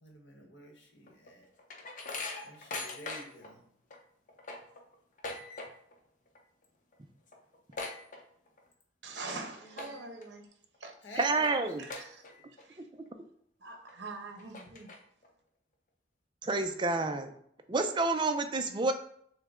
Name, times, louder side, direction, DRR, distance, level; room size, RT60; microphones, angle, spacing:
voice 1, 0.0-1.5 2.4-3.7 9.1-9.3 9.6-10.0 11.0-11.8, left 1 dB, 90° left, 1.1 m, -49 dB
sound 1, 1.1-3.5 3.9-4.0 4.3-6.0 6.3-6.6 6.9-7.0 7.3-8.7 9.1-9.4 9.7-10.2 10.7-10.8 11.4-11.5 11.9-12.6 13.1-13.2 13.9-14.0 14.4-15.3, left 3 dB, 45° left, 0.7 m, -41 dB
voice 2, 9.0-10.5 10.8-10.9 11.8-12.9 13.6-14.9, right 3 dB, 70° right, 0.9 m, -44 dB
voice 3, 11.2-11.8 16.4-17.3 17.7-18.9, right 3 dB, 25° right, 0.4 m, -29 dB
6.5 x 2.2 x 3.6 m
head